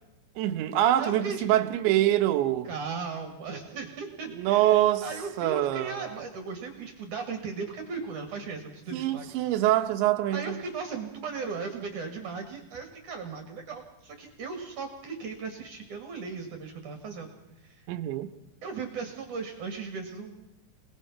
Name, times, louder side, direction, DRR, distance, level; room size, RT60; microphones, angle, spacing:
voice 1, 0.4-2.7 4.4-5.1 5.4-6.2 8.9-10.6 17.9-18.3, right 13 dB, 85° right, 3.4 m, -25 dB
voice 2, 1.0-1.7 2.6-9.3 10.3-17.3 17.6-17.8 18.6-20.4, right 5 dB, 50° right, 3.2 m, -37 dB
28.0 x 19.0 x 5.6 m
omnidirectional pair, 5.1 m